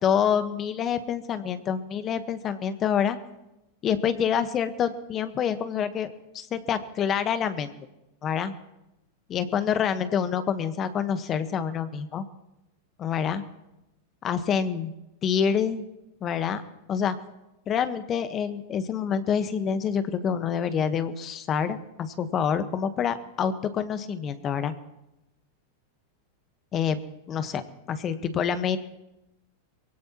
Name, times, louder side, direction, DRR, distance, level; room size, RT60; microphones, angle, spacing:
voice 1, 0.0-3.2 3.8-7.7 8.2-8.5 9.3-12.2 13.0-13.4 14.2-14.9 15.2-15.8 16.2-16.6 16.9-17.1 17.7-24.7 26.7-27.0 27.3-27.6 27.9-28.8, left 7 dB, 35° left, 11 dB, 1.2 m, -27 dB
23.0 x 16.5 x 3.0 m, 0.94 s
hypercardioid pair, 100°, 0 cm